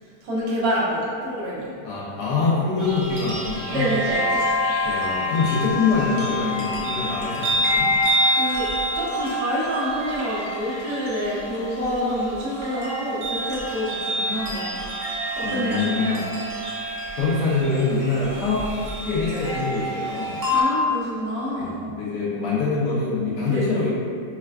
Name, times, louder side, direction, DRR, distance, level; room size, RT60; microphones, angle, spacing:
voice 1, 0.0-1.7 3.7-4.4 8.3-8.7 8.9-14.8 15.3-16.2 20.5-21.9 23.5-23.6, equal, 80° right, -7 dB, 1.4 m, -27 dB
voice 2, 1.8-3.9 4.8-7.9 15.4-16.2 17.2-18.7 19.0-20.4 21.5-23.9, left 4 dB, 75° left, -8 dB, 1.4 m, -24 dB
sound 1, 2.8-20.6, equal, 60° right, 0.6 m, -27 dB
4.4 x 2.3 x 2.3 m, 2.3 s
omnidirectional pair, 1.8 m